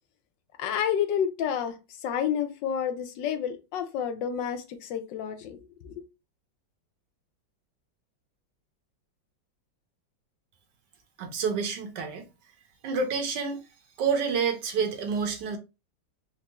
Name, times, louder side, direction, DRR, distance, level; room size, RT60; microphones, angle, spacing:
voice 1, 0.6-1.8 2.0-6.0, left 8 dB, 80° left, 1.3 m, -30 dB
voice 2, 11.2-12.3 12.8-13.6 14.0-15.6, right 5 dB, 70° right, 1.4 m, -28 dB
4.4 x 2.2 x 2.9 m
omnidirectional pair, 2.0 m